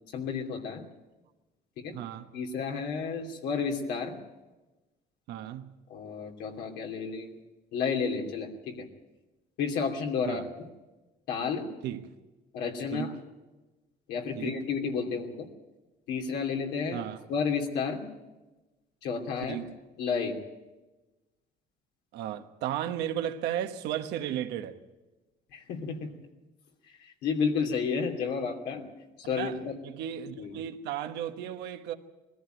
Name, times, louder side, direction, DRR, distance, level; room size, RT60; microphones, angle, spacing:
voice 1, 0.1-0.8 1.8-1.9 2.3-4.2 5.9-7.3 7.7-8.9 9.6-10.7 11.3-11.7 12.5-13.1 14.1-15.5 16.1-17.0 17.3-18.0 19.0-19.6 20.0-20.3 25.5-26.1 27.0-28.9 29.2-29.7 30.4-30.5, left 5 dB, 85° left, 2.8 m, -31 dB
voice 2, 1.9-2.3 5.3-5.7 10.3-10.4 11.8-12.1 12.9-13.1 14.3-14.6 16.9-17.2 19.5-19.7 22.1-24.8 29.4-29.6 29.8-31.9, right 11 dB, 85° right, 1.2 m, -34 dB
20.5 x 14.0 x 9.2 m
cardioid pair, 110°, 17 cm